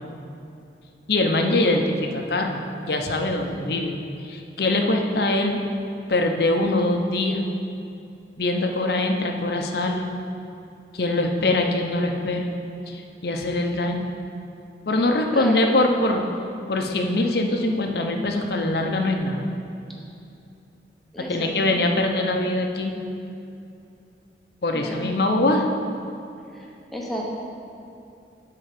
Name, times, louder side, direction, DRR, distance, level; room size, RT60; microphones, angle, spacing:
voice 1, 1.1-5.6 6.1-7.4 8.4-10.1 10.9-12.5 12.9-14.1 14.9-16.3 16.7-19.5 21.2-23.0 24.6-25.7, left 2 dB, 60° left, 3 dB, 0.7 m, -23 dB
voice 2, 21.1-21.9 24.7-25.0 26.5-26.7 26.9-27.3, equal, ahead, -3 dB, 0.9 m, -32 dB
8.9 x 3.8 x 6.7 m, 2.7 s
head